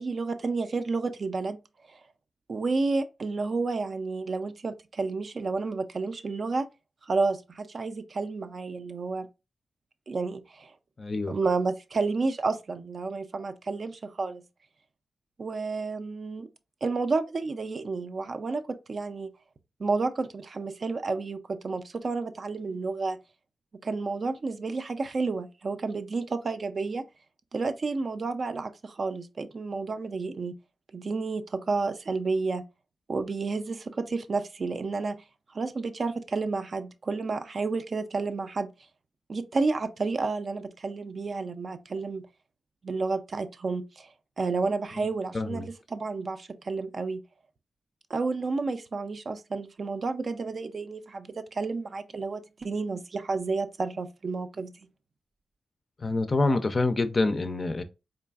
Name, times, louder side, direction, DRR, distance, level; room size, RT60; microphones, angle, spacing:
voice 1, 0.0-1.6 1.9-2.0 2.5-6.7 7.0-9.3 10.1-10.7 11.3-14.4 15.4-16.5 16.8-19.3 19.8-23.2 23.8-27.0 27.5-30.6 30.9-32.6 33.1-35.2 35.5-38.7 39.3-42.3 42.8-44.1 44.4-47.2 48.1-54.8, right 3 dB, 45° right, 0.3 m, -31 dB
voice 2, 11.0-11.3 45.0-45.1 45.3-45.7 56.0-57.8, left 2 dB, 30° left, 0.4 m, -26 dB
3.8 x 3.3 x 2.3 m
wide cardioid pair, 115°, 0 cm